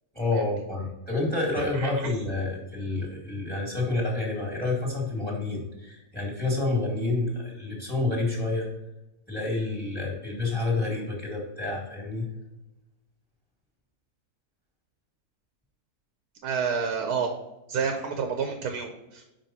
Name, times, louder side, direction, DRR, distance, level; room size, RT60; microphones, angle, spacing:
voice 1, 0.1-8.7 9.3-12.2, left 2 dB, 5° left, -1 dB, 1.6 m, -29 dB
voice 2, 16.4-17.3 17.7-19.2, right 6 dB, 80° right, 4 dB, 1.3 m, -29 dB
5.2 x 5.1 x 4.2 m, 0.98 s
omnidirectional pair, 1.6 m